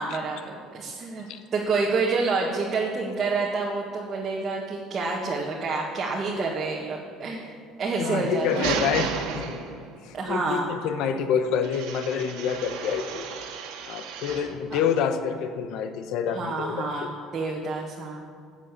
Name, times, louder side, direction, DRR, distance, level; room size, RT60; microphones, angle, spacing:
voice 1, 0.0-7.5 7.8-8.6 10.1-10.7 14.7-14.8 16.3-18.2, right 3 dB, 25° right, -3 dB, 1.6 m, -28 dB
voice 2, 8.0-9.6 10.0-13.3 13.8-17.1, left 7 dB, 60° left, 9 dB, 1.1 m, -27 dB
sound 1, 8.1-10.1 11.6-14.6, right 7 dB, 85° right, 1.8 m, -33 dB
14.0 x 7.9 x 8.2 m, 2.1 s
cardioid pair, 170°, 0 cm